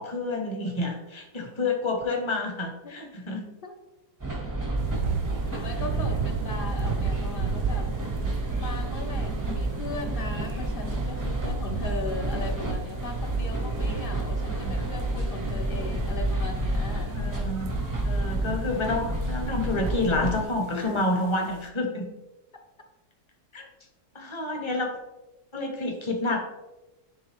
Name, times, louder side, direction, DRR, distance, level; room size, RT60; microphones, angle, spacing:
voice 1, 0.0-3.4 14.6-14.8 17.1-17.7 18.0-22.1 23.5-23.7 24.1-24.9 25.5-26.5, left 2 dB, 25° left, 2 dB, 0.7 m, -29 dB
sound 1, 4.2-20.4, right 2 dB, 20° right, 0.5 m, -30 dB
sound 2, 4.8-21.7, right 6 dB, 65° right, 0.8 m, -36 dB
voice 2, 5.5-7.9 8.6-17.1 20.7-21.5, left 4 dB, 90° left, 3 dB, 0.4 m, -38 dB
10.0 x 3.4 x 3.5 m, 1.1 s
omnidirectional pair, 1.8 m